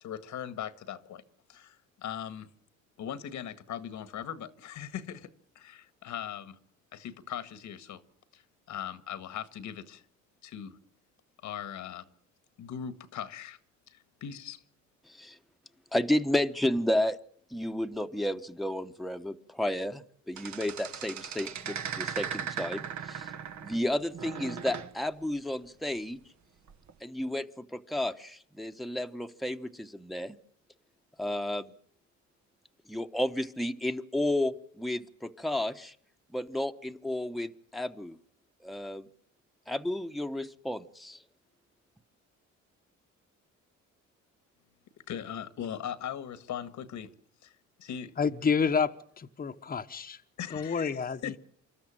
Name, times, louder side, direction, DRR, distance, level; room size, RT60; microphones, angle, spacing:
voice 1, 0.0-1.2 1.5-2.5 3.0-5.3 5.6-6.6 6.9-8.0 8.3-10.0 10.4-10.8 11.4-12.1 12.6-13.6 13.9-14.6 45.1-47.1 47.4-47.5 47.8-48.1 50.4-51.4, left 9 dB, 75° left, 1.7 m, -39 dB
voice 2, 15.1-15.4 15.9-17.2 17.5-23.3 23.6-26.2 27.0-30.4 31.2-31.7 32.9-35.9 36.3-38.2 38.6-39.1 39.7-41.2, left 1 dB, ahead, 1.1 m, -32 dB
sound 1, 20.4-23.9 24.1-24.9 26.7-26.9, right 7 dB, 70° right, 1.5 m, -38 dB
voice 3, 48.2-48.9 49.2-50.2 50.5-51.3, left 5 dB, 30° left, 1.0 m, -29 dB
26.5 x 13.0 x 8.9 m
cardioid pair, 90°, 30 cm